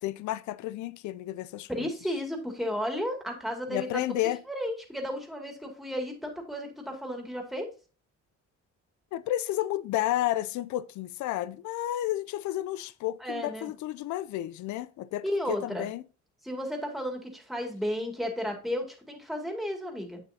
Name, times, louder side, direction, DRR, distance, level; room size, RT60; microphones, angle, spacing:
voice 1, 0.0-1.9 3.7-4.4 9.1-16.0, left 14 dB, 70° left, 0.4 m, -31 dB
voice 2, 1.7-4.0 4.5-7.7 13.2-13.7 15.2-15.9 16.4-20.2, equal, ahead, 2.2 m, -33 dB
8.1 x 7.0 x 2.7 m
cardioid pair, 90°, 30 cm